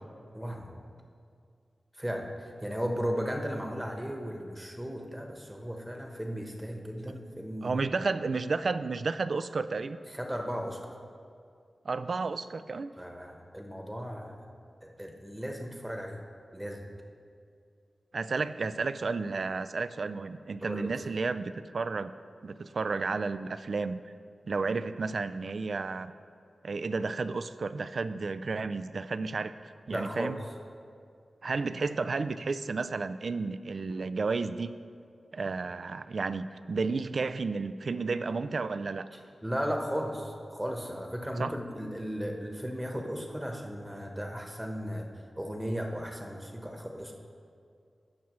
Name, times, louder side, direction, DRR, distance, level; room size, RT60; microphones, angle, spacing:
voice 1, 0.3-0.8 1.9-7.8 10.1-10.9 13.0-14.4 14.8-16.2 16.5-16.9 20.6-20.9 29.9-30.3 39.4-45.1 45.4-47.2, equal, 10° right, 2 dB, 1.0 m, -36 dB
voice 2, 7.6-10.0 11.8-12.9 18.1-22.1 22.4-24.1 24.5-26.1 26.6-29.5 29.9-30.4 31.4-34.7 35.3-39.1 41.4-41.5, right 4 dB, 65° right, 13 dB, 0.3 m, -32 dB
17.5 x 6.0 x 3.1 m, 2.3 s
wide cardioid pair, 95°, 0 cm